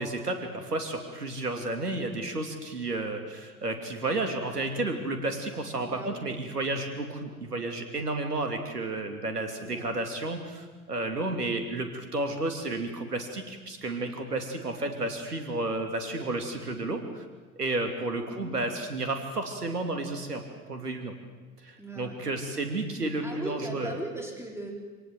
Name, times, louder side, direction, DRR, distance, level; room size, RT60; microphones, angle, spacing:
voice 1, 0.0-17.2 17.6-20.4 20.7-21.1 21.6-24.0, right 2 dB, 85° right, 5 dB, 3.0 m, -32 dB
voice 2, 5.8-6.2 9.6-9.9 18.3-18.6 21.8-22.2 22.5-22.6 23.2-24.7, right 1 dB, 5° right, 0 dB, 4.5 m, -39 dB
26.0 x 18.0 x 8.0 m, 1.3 s
figure-of-eight pair, 80°, 46 cm